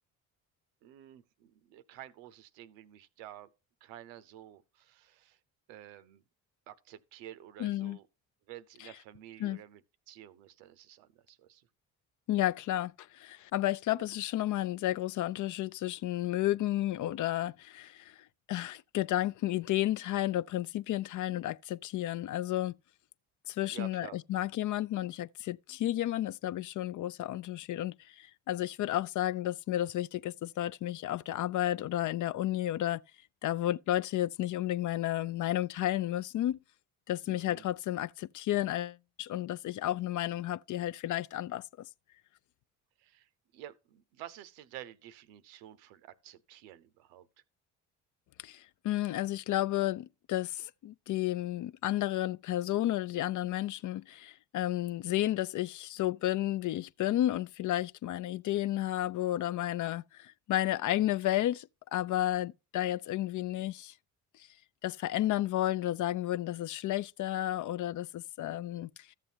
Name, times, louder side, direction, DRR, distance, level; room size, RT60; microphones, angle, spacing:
voice 1, 0.8-3.5 3.8-5.4 5.7-6.2 6.7-8.1 8.5-11.7 23.7-24.4 37.3-37.6 43.0-47.3 68.5-68.9, right 12 dB, 85° right, 0.7 m, -50 dB
voice 2, 7.6-8.0 9.4-9.6 12.3-18.1 18.5-22.7 23.5-33.0 33.4-36.6 37.1-41.9 48.4-63.9 64.8-68.9, left 14 dB, 50° left, 0.4 m, -32 dB
13.5 x 7.5 x 2.8 m
hypercardioid pair, 60°, 40 cm